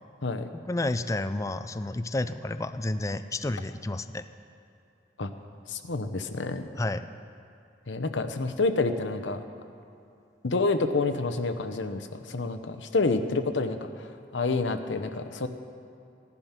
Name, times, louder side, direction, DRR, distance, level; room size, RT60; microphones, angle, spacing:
voice 1, 0.5-4.3 6.8-7.1, left 2 dB, 15° left, 12 dB, 0.4 m, -30 dB
voice 2, 5.7-6.7 7.9-9.4 10.4-15.5, left 3 dB, 80° left, 9 dB, 0.9 m, -28 dB
16.0 x 11.0 x 5.8 m, 2.5 s
head